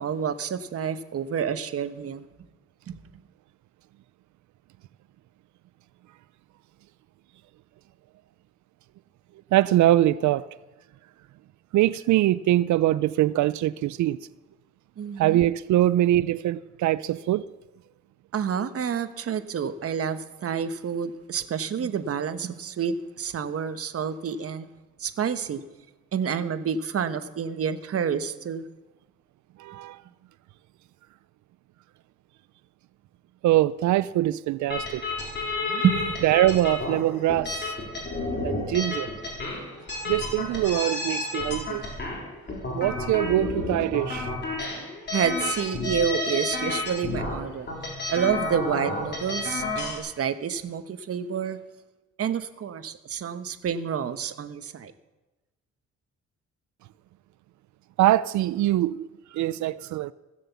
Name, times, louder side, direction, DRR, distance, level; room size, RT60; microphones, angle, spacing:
voice 1, 0.0-2.2 2.9-3.0 15.0-15.4 18.3-24.7 25.0-25.6 26.1-28.7 35.6-36.2 45.1-47.7 48.1-51.6 52.2-54.9, right 7 dB, 50° right, 1.1 m, -28 dB
voice 2, 9.5-10.5 11.7-14.2 15.2-17.5 29.6-30.0 33.4-35.1 36.2-37.7 38.4-39.1 40.1-41.8 42.7-44.3 58.0-60.1, right 14 dB, 70° right, 0.5 m, -23 dB
sound 1, 34.7-50.0, left 2 dB, 35° left, 4.0 m, -31 dB
15.5 x 7.6 x 7.0 m
cardioid pair, 90°, 30 cm